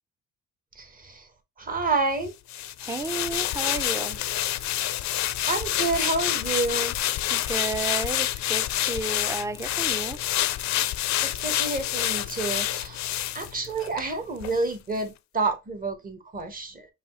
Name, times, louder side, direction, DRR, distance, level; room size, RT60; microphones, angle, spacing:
voice 1, 0.8-1.2 1.6-2.3 5.4-7.0 11.2-13.0 13.3-16.9, right 3 dB, 30° right, 1.2 m, -29 dB
sound 1, 2.5-14.1 14.4-14.6, left 13 dB, 65° left, 0.5 m, -28 dB
voice 2, 2.8-4.2 7.3-10.2, right 3 dB, 10° right, 0.4 m, -32 dB
5.3 x 2.4 x 3.0 m
cardioid pair, 90°, 30 cm